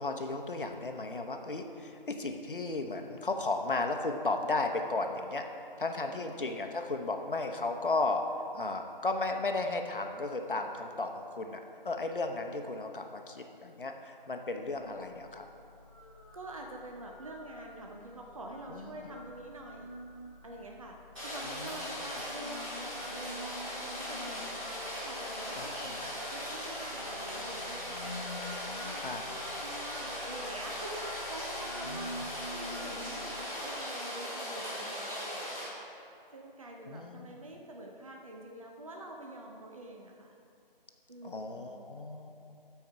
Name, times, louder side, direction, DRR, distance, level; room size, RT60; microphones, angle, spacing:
voice 1, 0.0-5.4 5.8-8.2 8.5-15.4 18.7-19.1 25.5-26.1 29.0-29.2 31.9-32.2 36.9-37.3 41.2-42.3, left 3 dB, 65° left, 5 dB, 0.9 m, -34 dB
sound 1, 14.7-33.5, left 1 dB, 35° left, 0.5 m, -48 dB
voice 2, 16.3-19.9 20.4-20.9 21.2-24.5 25.0-28.4 28.6-29.1 29.6-35.8 36.3-40.3 41.1-42.0, right 1 dB, 35° right, 0 dB, 0.7 m, -46 dB
Rain, 21.1-35.7, equal, 5° right, 1.2 m, -39 dB
13.0 x 4.7 x 4.6 m, 2.5 s
figure-of-eight pair, 160°, 29 cm